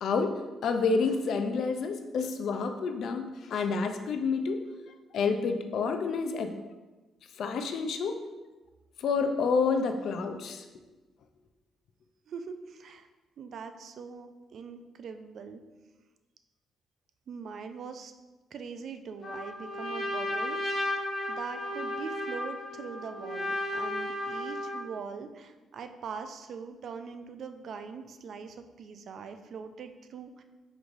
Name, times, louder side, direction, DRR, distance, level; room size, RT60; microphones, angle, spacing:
voice 1, 0.0-4.6 5.1-6.5 7.4-8.2 9.0-10.7, left 4 dB, 65° left, 6 dB, 0.4 m, -29 dB
voice 2, 12.3-13.1 13.4-15.6 17.3-18.1 18.5-30.4, right 5 dB, 60° right, 8 dB, 0.3 m, -42 dB
Trumpet, 19.2-24.9, left 1 dB, 40° left, 1.2 m, -34 dB
5.1 x 3.1 x 2.5 m, 1.2 s
cardioid pair, 90°, 0 cm